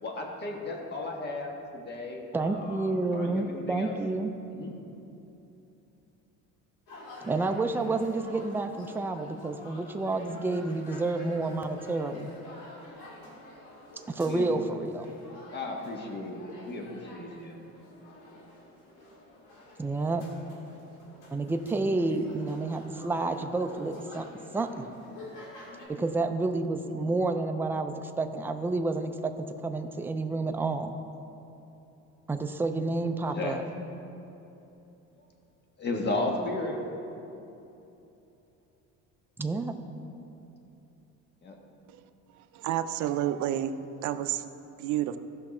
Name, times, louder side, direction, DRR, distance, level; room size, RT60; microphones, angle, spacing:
voice 1, 0.0-4.0 4.5-4.7 14.2-14.5 15.5-17.6 26.8-27.1 33.3-33.6 35.8-36.8 41.4-41.6, left 2 dB, 35° left, 1 dB, 1.5 m, -35 dB
voice 2, 2.3-4.3 7.2-12.3 14.1-15.2 19.8-20.3 21.3-24.2 24.5-24.9 25.9-29.3 29.6-30.9 32.3-33.6 39.4-39.8, right 3 dB, 5° right, 6 dB, 0.4 m, -29 dB
sound 1, 6.9-25.9, left 1 dB, 75° left, 2.6 m, -49 dB
voice 3, 42.5-43.7 44.0-44.4 44.8-45.2, right 12 dB, 65° right, 10 dB, 0.6 m, -29 dB
15.5 x 5.8 x 4.3 m, 2.9 s
cardioid pair, 140°, 32 cm